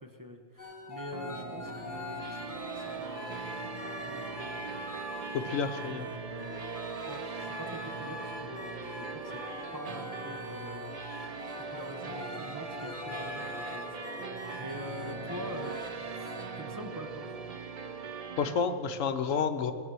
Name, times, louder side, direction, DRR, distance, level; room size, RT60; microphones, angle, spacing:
voice 1, 0.0-3.5 3.9-4.7 7.1-9.4 9.7-11.0 11.6-14.2 14.5-15.8 16.1-17.4, equal, 20° right, 2 dB, 0.7 m, -45 dB
sound 1, 0.6-15.9 16.2-16.5, left 2 dB, 35° left, 1.8 m, -42 dB
sound 2, 1.1-18.6, right 5 dB, 65° right, 0.3 m, -41 dB
voice 2, 5.3-6.1 18.4-19.7, left 6 dB, 75° left, 7 dB, 1.2 m, -30 dB
18.5 x 7.5 x 6.2 m, 2.2 s
omnidirectional pair, 1.4 m